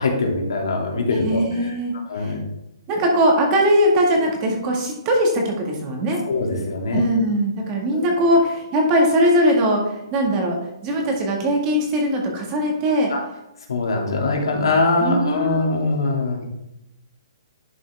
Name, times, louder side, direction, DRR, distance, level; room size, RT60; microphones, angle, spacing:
voice 1, 0.0-1.4 2.1-2.4 6.3-7.0 13.1-13.2 13.7-16.5, left 3 dB, 80° left, 1 dB, 2.4 m, -22 dB
voice 2, 1.2-2.4 2.9-6.2 6.9-10.6 10.8-13.1 15.0-15.9, equal, 20° right, 0 dB, 1.8 m, -20 dB
11.0 x 5.9 x 3.5 m, 0.87 s
hypercardioid pair, 165°, 3 cm